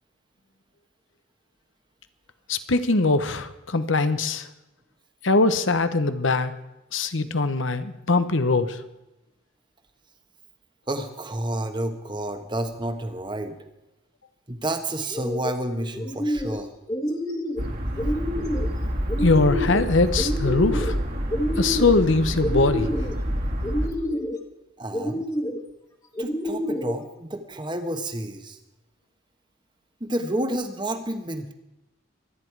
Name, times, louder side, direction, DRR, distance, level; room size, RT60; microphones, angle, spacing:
voice 1, 2.5-4.5 5.2-6.5 6.9-8.8 19.2-21.0 21.6-22.9, left 3 dB, 70° left, 11 dB, 1.1 m, -22 dB
voice 2, 10.9-13.6 14.5-16.7 24.8-25.2 26.2-28.6 30.0-31.5, right 1 dB, 25° right, 7 dB, 1.3 m, -30 dB
sound 1, 15.0-15.5 15.9-16.6 16.9-17.6 18.0-18.7 19.1-19.8 20.2-21.0 21.3-22.0 22.4-23.2 23.6-24.4 24.9-25.6 26.2-27.0, left 1 dB, 20° left, 1.7 m, -28 dB
sound 2, 17.6-23.9, equal, 45° right, 2.5 m, -28 dB
24.5 x 10.5 x 4.8 m, 0.93 s
head